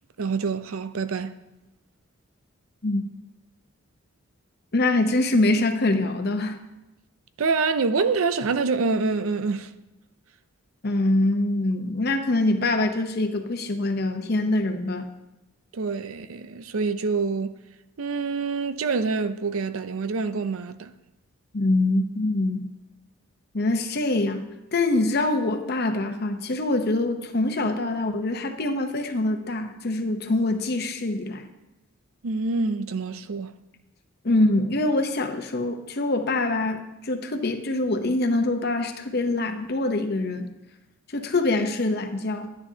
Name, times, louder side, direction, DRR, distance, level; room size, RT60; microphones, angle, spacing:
voice 1, 0.2-1.4 7.4-9.7 15.7-17.6 18.0-20.9 32.2-33.5, right 4 dB, 85° right, 0.5 m, -26 dB
voice 2, 4.7-6.6 10.8-15.1 21.5-22.7 23.5-24.4 24.7-31.5 34.2-40.5 41.1-42.5, left 2 dB, 50° left, 0.8 m, -24 dB
11.5 x 9.8 x 2.8 m
head